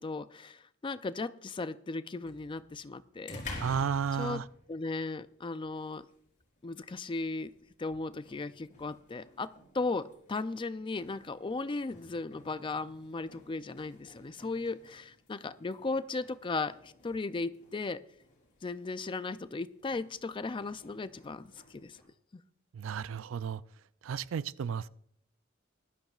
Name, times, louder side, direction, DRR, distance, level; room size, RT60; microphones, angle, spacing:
voice 1, 0.0-3.4 4.2-4.4 4.7-6.1 6.6-7.5 7.8-18.0 18.6-22.0 22.3-22.4, left 3 dB, 25° left, 0.4 m, -36 dB
sound 1, 2.2-22.0, left 2 dB, 40° left, 3.9 m, -52 dB
voice 2, 3.6-4.5 22.7-23.6 24.0-24.9, right 7 dB, 70° right, 0.4 m, -33 dB
19.5 x 12.0 x 2.4 m
head